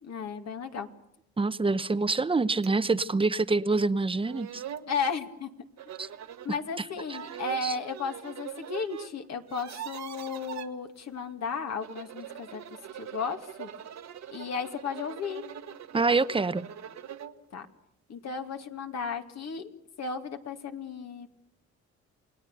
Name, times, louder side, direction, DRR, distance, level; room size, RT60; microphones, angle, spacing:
voice 1, 0.0-0.9 4.9-5.5 6.4-13.7 14.3-15.4 17.5-17.7 18.1-19.7 20.0-21.3, left 5 dB, 60° left, 2.3 m, -34 dB
voice 2, 1.4-4.6 6.0-6.1 7.6-7.7 15.9-16.7, right 3 dB, 20° right, 0.8 m, -26 dB
sound 1, 2.6-2.8 3.2-3.3 4.0-4.1 4.2-4.9 5.8-6.5 7.0-9.1 9.4-10.7 11.7-17.4, right 9 dB, 65° right, 1.5 m, -42 dB
28.5 x 19.0 x 6.7 m
cardioid pair, 90°, 30 cm